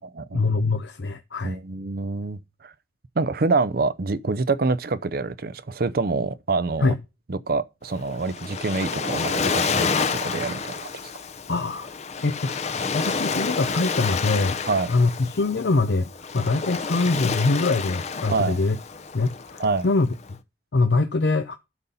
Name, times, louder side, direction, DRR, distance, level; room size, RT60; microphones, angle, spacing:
voice 1, 0.3-1.6 6.8-7.0 11.5-11.9 12.2-12.6 12.9-14.6 14.9-18.8 19.1-20.4 20.7-21.6, left 3 dB, 80° left, 0.7 m, -23 dB
voice 2, 1.4-2.7 3.2-6.9 7.3-11.1 14.7-14.9 18.3-18.6 19.6-19.9, right 3 dB, 55° right, 0.6 m, -26 dB
Waves surf, 7.9-20.3, left 5 dB, 40° left, 0.7 m, -29 dB
12.5 x 4.2 x 5.5 m
head